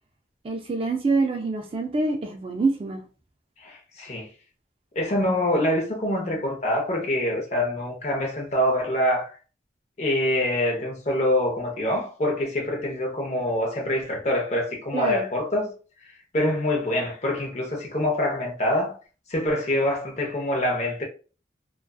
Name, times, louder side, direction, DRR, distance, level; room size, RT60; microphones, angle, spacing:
voice 1, 0.4-3.0 14.9-15.3, right 3 dB, 30° right, 0.3 m, -25 dB
voice 2, 3.6-4.3 5.0-9.3 10.0-15.7 16.3-19.0 19.3-21.0, left 1 dB, 40° left, 0.7 m, -25 dB
2.5 x 2.3 x 2.3 m
head